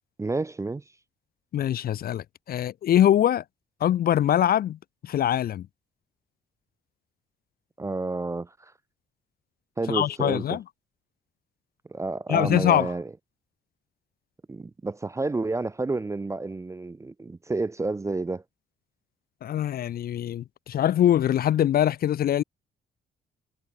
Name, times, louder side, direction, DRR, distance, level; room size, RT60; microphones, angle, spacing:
voice 1, 0.2-0.8 7.8-8.7 9.8-10.6 11.9-13.1 14.5-18.4, right 3 dB, 15° right, 0.4 m, -30 dB
voice 2, 1.5-3.4 3.8-5.7 9.9-10.6 12.3-12.9 19.4-22.4, left 11 dB, 50° left, 0.4 m, -23 dB
cardioid pair, 90°, 20 cm